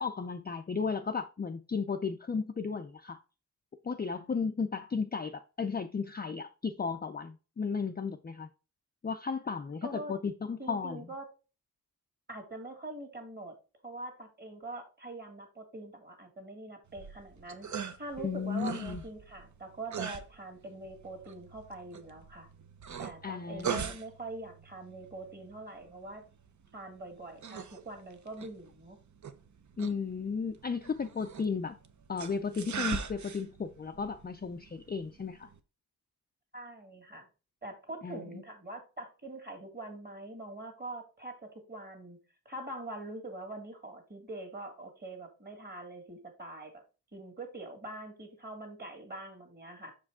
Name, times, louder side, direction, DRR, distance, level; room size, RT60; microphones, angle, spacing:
voice 1, 0.0-3.2 3.8-8.5 9.0-11.1 18.2-19.0 23.2-23.9 29.8-31.8 32.1-35.5 38.0-38.4, left 5 dB, 25° left, 0.4 m, -34 dB
voice 2, 9.8-10.2 10.6-11.3 12.3-13.5 13.8-17.7 18.0-22.5 23.0-26.2 26.7-29.0 36.5-37.3 37.6-42.2 42.5-46.8 47.1-49.9, right 2 dB, 25° right, 2.0 m, -43 dB
sound 1, 16.9-35.6, right 6 dB, 50° right, 0.7 m, -43 dB
6.2 x 4.9 x 3.6 m
wide cardioid pair, 110°, 37 cm